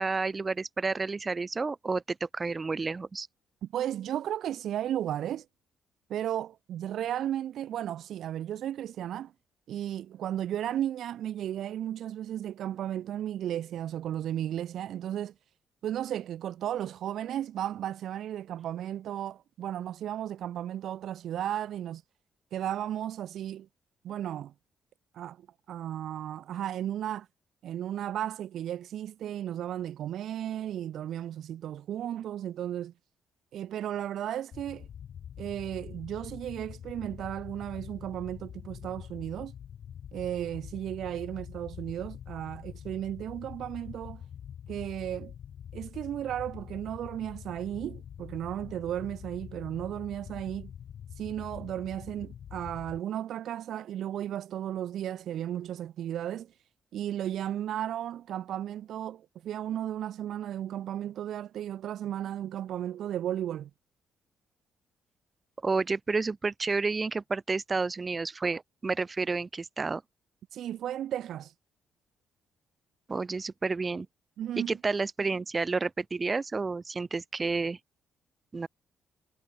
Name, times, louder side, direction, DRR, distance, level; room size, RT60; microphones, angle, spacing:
voice 1, 0.0-3.3 65.6-70.0 73.1-74.1 74.6-77.8 78.5-78.7, right 4 dB, 30° right, 0.8 m, -30 dB
voice 2, 3.6-5.5 6.1-9.3 9.7-15.3 15.8-22.0 22.5-23.7 24.0-24.5 25.1-27.3 27.6-32.9 33.5-34.9 35.4-39.5 40.1-44.2 44.7-45.3 45.7-50.7 51.2-56.5 56.9-63.7 70.5-71.5 74.4-74.8, right 11 dB, 75° right, 0.4 m, -34 dB
sound 1, 34.5-53.0, left 9 dB, 60° left, 1.2 m, -45 dB
cardioid pair, 90°, 0 cm